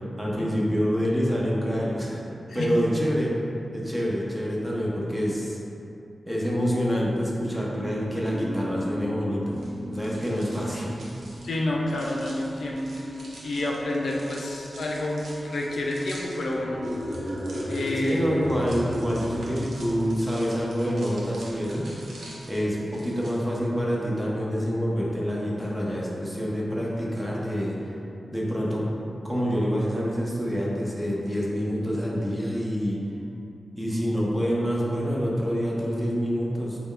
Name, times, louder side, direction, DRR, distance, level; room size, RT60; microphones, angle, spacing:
voice 1, 0.2-2.2 2.5-3.3 3.7-5.6 6.3-9.6 9.9-10.9 18.0-21.9 22.5-27.8 28.3-28.9 29.2-33.0 33.8-36.8, equal, 5° right, -5 dB, 0.6 m, -27 dB
sound 1, 7.7-23.4, right 1 dB, 60° right, 0.3 m, -42 dB
sound 2, 9.5-23.3, right 1 dB, 80° right, 0.7 m, -47 dB
voice 2, 11.4-12.9 13.4-16.8 17.7-18.2, left 1 dB, 80° left, -2 dB, 0.4 m, -29 dB
sound 3, 16.6-20.2, equal, 35° right, 1.2 m, -34 dB
4.2 x 2.2 x 3.6 m, 2.7 s
wide cardioid pair, 145°, 0 cm